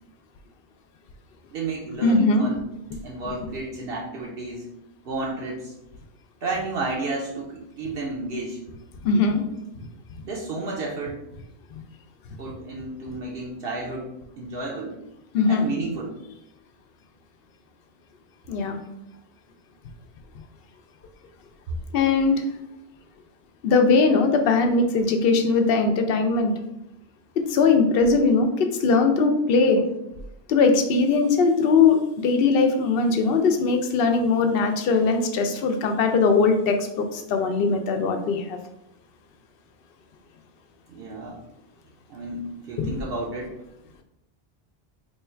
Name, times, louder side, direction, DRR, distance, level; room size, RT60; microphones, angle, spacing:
voice 1, 1.5-2.7 3.0-4.7 5.0-5.7 6.4-8.6 10.2-11.2 12.4-14.1 14.4-15.0 15.5-16.2 40.9-41.4 42.1-43.6, right 2 dB, 70° right, -2 dB, 0.8 m, -32 dB
voice 2, 2.0-2.5 9.0-9.4 15.3-15.7 18.5-18.8 21.9-22.4 23.6-26.5 27.5-29.8 30.5-38.6 42.8-42.9, left 4 dB, 70° left, 5 dB, 0.7 m, -20 dB
3.1 x 2.3 x 4.3 m, 0.84 s
omnidirectional pair, 1.0 m